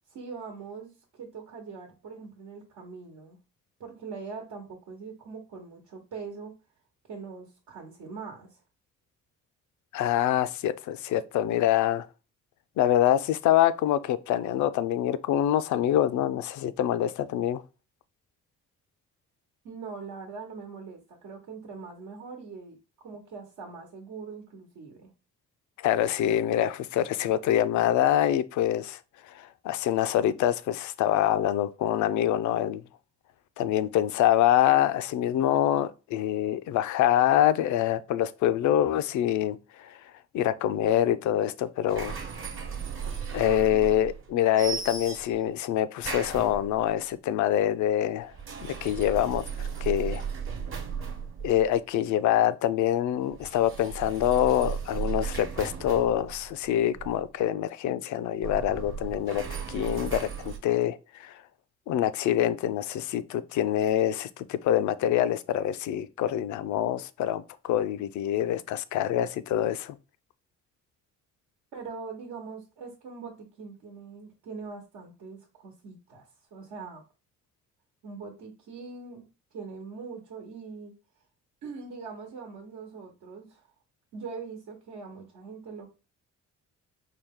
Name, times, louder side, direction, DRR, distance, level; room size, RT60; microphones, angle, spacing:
voice 1, 0.1-3.4 3.8-6.5 7.0-8.6 19.6-25.1 71.7-77.0 78.0-79.3 79.5-80.9 81.6-83.7 84.1-85.9, right 5 dB, 80° right, 1.1 m, -42 dB
voice 2, 9.9-12.1 12.8-17.6 25.8-29.0 29.3-32.8 33.6-40.0 40.3-42.2 43.3-48.3 48.6-49.4 49.8-50.2 51.4-59.4 59.7-61.3 61.9-70.0, left 11 dB, 70° left, 0.5 m, -25 dB
sound 1, 41.9-44.3 44.6-45.5 46.0-46.9 48.2-51.8 53.3-57.3 58.3-60.6, right 6 dB, 45° right, 1.0 m, -36 dB
4.7 x 2.3 x 3.5 m
cardioid pair, 90°, 30 cm